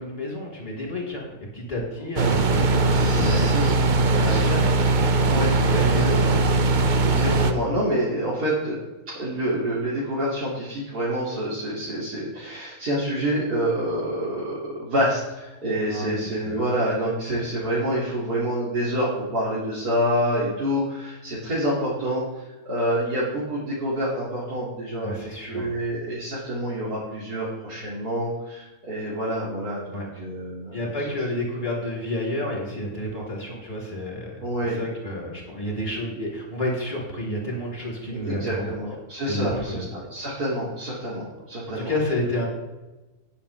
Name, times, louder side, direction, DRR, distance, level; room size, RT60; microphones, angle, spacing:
voice 1, 0.0-3.6 4.0-4.8 5.5-6.5 15.9-16.6 25.0-25.7 29.9-30.1 30.7-34.4 34.7-38.8 39.2-39.9 41.7-42.5, left 1 dB, 25° left, -4 dB, 4.1 m, -30 dB
sound 1, 2.2-7.5, right 3 dB, 40° right, 0.7 m, -20 dB
voice 2, 2.9-4.5 5.3-6.1 7.0-8.8 9.1-30.8 34.4-34.8 38.1-41.9, equal, 90° right, -8 dB, 3.5 m, -27 dB
20.5 x 7.1 x 3.5 m, 1.1 s
omnidirectional pair, 1.6 m